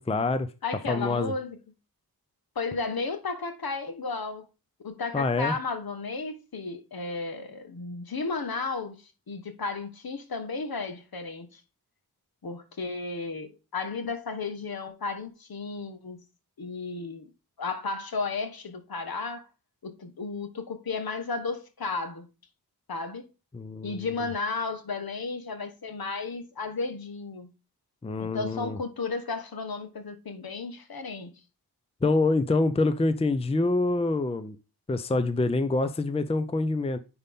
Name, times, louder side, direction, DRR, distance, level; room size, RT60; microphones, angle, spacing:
voice 1, 0.0-0.5 0.9-1.3 5.1-5.6 23.5-24.1 28.0-28.8 32.0-34.6 34.9-37.0, left 2 dB, 15° left, 0.6 m, -26 dB
voice 2, 0.6-1.6 2.5-4.5 4.8-9.0 9.3-11.6 12.4-16.2 16.6-17.3 17.6-19.5 19.8-22.3 22.9-23.3 23.8-27.5 28.2-31.4, left 4 dB, 65° left, 1.4 m, -33 dB
9.5 x 4.2 x 3.6 m
wide cardioid pair, 100°, 39 cm